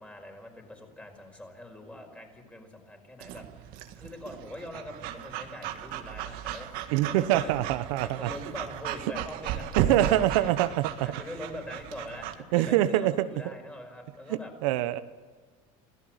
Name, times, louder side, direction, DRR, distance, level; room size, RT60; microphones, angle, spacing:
voice 1, 0.0-3.5 4.0-6.7 7.2-7.5 8.0-10.5 11.0-14.5, left 1 dB, 10° left, 3 dB, 5.2 m, -43 dB
Breathing / Dog, 3.2-12.4, right 10 dB, 65° right, 1.9 m, -35 dB
voice 2, 6.9-8.3 9.8-11.1 12.5-13.3 14.6-15.0, right 14 dB, 85° right, 12 dB, 1.0 m, -24 dB
26.0 x 17.0 x 8.0 m, 1.5 s
supercardioid pair, 125°, 17 cm